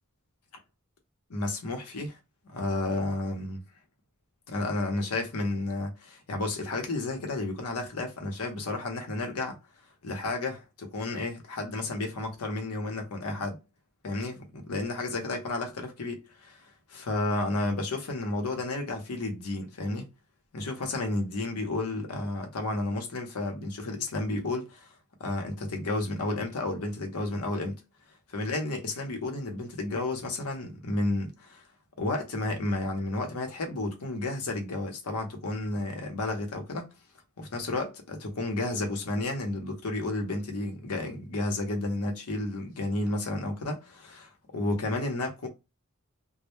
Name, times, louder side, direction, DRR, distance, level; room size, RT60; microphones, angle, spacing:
voice 1, 1.3-2.2 2.4-3.6 4.5-9.6 10.0-13.6 14.0-16.6 16.9-20.1 20.5-24.9 25.2-27.8 28.3-31.6 32.0-36.9 37.4-45.5, left 2 dB, 80° left, 0.7 m, -32 dB
2.1 x 2.1 x 2.9 m
head